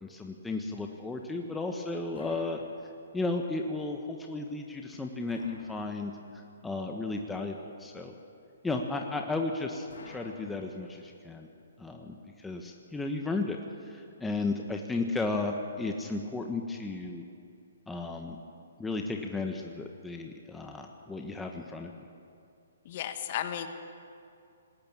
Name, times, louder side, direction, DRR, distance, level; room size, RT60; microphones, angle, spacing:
voice 1, 0.0-2.6 3.1-6.1 6.6-8.1 8.6-11.5 11.8-13.6 13.9-17.2 17.9-18.4 18.8-21.9, left 3 dB, 5° left, 2 dB, 1.3 m, -34 dB
sound 1, 2.1-3.3 5.3-6.5 9.9-11.2, left 3 dB, 75° left, 5.0 m, -51 dB
voice 2, 22.9-23.7, left 10 dB, 45° left, 8 dB, 1.6 m, -34 dB
20.0 x 18.0 x 7.5 m, 2.4 s
hypercardioid pair, 135°, 0 cm